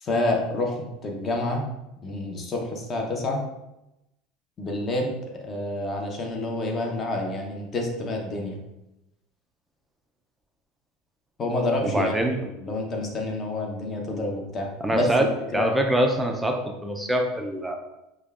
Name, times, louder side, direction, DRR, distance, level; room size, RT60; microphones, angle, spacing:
voice 1, 0.0-1.6 2.0-3.4 4.6-5.1 5.4-8.6 11.4-12.1 12.4-15.1 15.5-15.7, left 2 dB, 30° left, 1 dB, 0.7 m, -28 dB
voice 2, 11.8-12.4 14.8-15.3 15.5-16.6 16.8-17.8, right 1 dB, 5° right, 2 dB, 0.4 m, -24 dB
5.1 x 2.2 x 2.4 m, 0.92 s
supercardioid pair, 135°, 0 cm